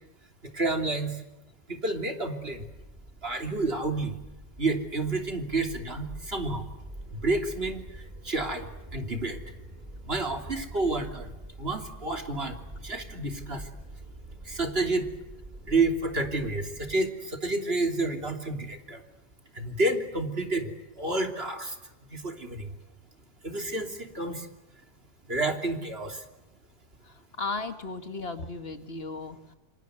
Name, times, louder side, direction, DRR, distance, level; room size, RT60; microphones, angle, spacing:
voice 1, 0.4-1.2 1.7-2.7 3.2-4.2 4.6-6.7 7.1-9.4 10.1-11.3 11.6-12.6 12.8-13.7 14.4-15.1 15.7-19.0 19.5-21.8 22.1-22.7 23.4-24.5 25.3-26.2, right 2 dB, 55° right, 4 dB, 3.5 m, -30 dB
sound 1, 2.5-17.0, right 1 dB, 35° right, 4.3 m, -45 dB
voice 2, 27.0-29.5, left 3 dB, 55° left, 8 dB, 2.0 m, -36 dB
28.0 x 26.5 x 8.1 m, 1.0 s
omnidirectional pair, 1.2 m